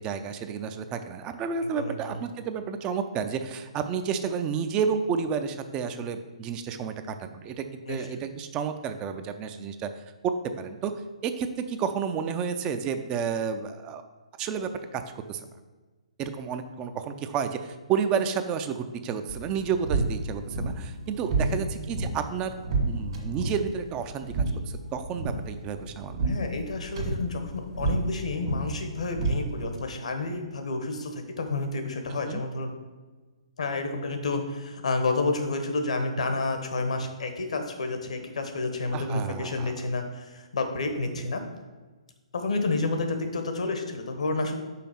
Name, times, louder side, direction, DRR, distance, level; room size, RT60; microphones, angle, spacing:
voice 1, 0.0-9.9 10.2-10.9 11.2-14.0 14.4-15.0 15.3-15.4 16.2-22.5 22.9-24.3 24.9-26.3 32.3-32.4 38.9-39.9, right 6 dB, 25° right, 9 dB, 0.4 m, -31 dB
voice 2, 1.6-2.2 7.9-8.3 21.4-21.7 26.2-32.7 33.6-41.4 42.3-44.6, left 3 dB, 70° left, 5 dB, 1.1 m, -30 dB
sound 1, 19.3-29.9, right 3 dB, 55° right, 1.8 m, -31 dB
5.7 x 4.1 x 5.5 m, 1.3 s
hypercardioid pair, 140°, 4 cm